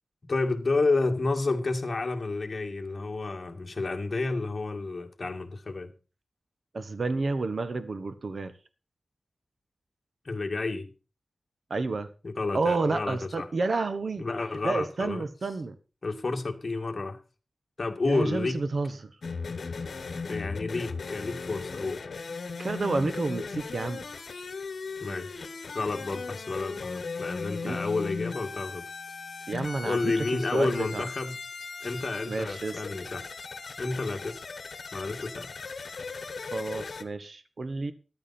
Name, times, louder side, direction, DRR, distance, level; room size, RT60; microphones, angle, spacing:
voice 1, 0.3-5.9 10.2-10.9 12.2-13.5 14.2-15.3 16.0-17.2 17.8-18.6 20.3-22.0 25.0-28.8 29.8-31.4 31.8-33.3 33.8-34.4 34.9-35.5, left 3 dB, 45° left, 2.1 m, -30 dB
voice 2, 6.7-8.5 11.7-12.1 12.5-14.2 14.6-15.7 18.0-19.1 22.6-24.0 27.6-27.8 29.5-30.2 30.5-31.0 32.2-32.8 36.4-37.9, right 3 dB, 60° right, 1.1 m, -30 dB
sound 1, 19.2-37.0, left 4 dB, 70° left, 1.3 m, -37 dB
14.0 x 11.0 x 4.3 m
wide cardioid pair, 100°, 0 cm